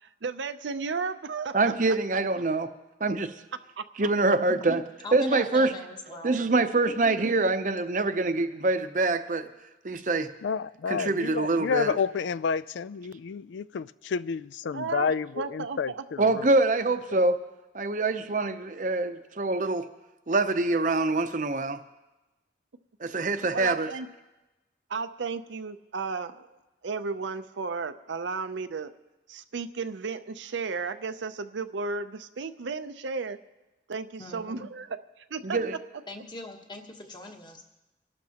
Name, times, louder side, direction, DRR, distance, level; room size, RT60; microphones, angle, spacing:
voice 1, 0.0-1.6 3.8-3.9 14.7-15.1 15.4-16.0 23.5-24.1 24.9-26.5 26.8-28.9 29.3-33.4 33.9-35.0 35.3-35.6, right 4 dB, 85° right, 0.6 m, -33 dB
voice 2, 1.5-2.7 3.0-3.3 4.0-4.8 5.1-5.7 6.2-9.5 9.8-10.3 10.9-11.9 16.2-17.4 17.7-19.9 20.3-21.8 23.0-23.9 35.4-35.8, right 2 dB, 45° right, 0.7 m, -25 dB
voice 3, 4.5-6.4 34.2-34.7 36.1-37.6, left 2 dB, 25° left, 1.2 m, -41 dB
voice 4, 10.4-16.5 17.1-17.2, left 6 dB, 85° left, 0.4 m, -30 dB
25.0 x 12.0 x 2.9 m
head